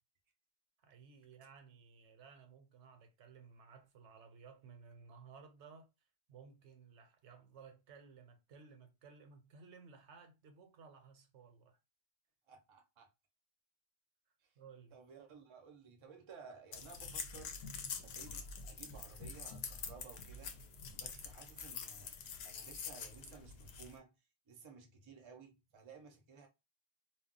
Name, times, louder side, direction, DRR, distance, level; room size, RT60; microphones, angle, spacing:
voice 1, 0.8-5.9 6.3-11.8 14.6-14.9, right 5 dB, 80° right, 0.9 m, -58 dB
voice 2, 12.5-13.1 14.4-14.5 14.9-17.6 17.9-20.6 20.9-22.2 22.4-24.1 24.5-26.5, right 5 dB, 35° right, 0.5 m, -56 dB
sound 1, 16.7-24.0, left 5 dB, 70° left, 0.8 m, -46 dB
2.3 x 2.1 x 3.7 m
omnidirectional pair, 1.2 m